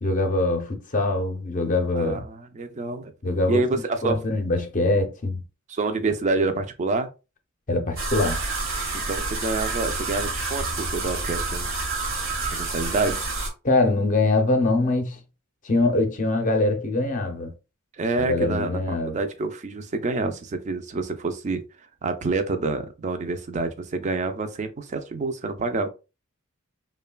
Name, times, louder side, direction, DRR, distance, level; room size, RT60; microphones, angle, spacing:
voice 1, 0.0-2.2 3.2-3.6 4.0-5.4 7.7-8.4 13.6-15.2 15.6-17.5 18.2-19.2, left 2 dB, 40° left, 0.5 m, -23 dB
voice 2, 2.0-3.1 3.5-4.2 5.7-7.1 9.1-11.7 12.5-13.2 18.0-21.6 22.0-25.9, right 3 dB, 35° right, 0.4 m, -27 dB
sound 1, 8.0-13.5, right 3 dB, 65° right, 1.0 m, -28 dB
3.1 x 2.1 x 2.2 m
head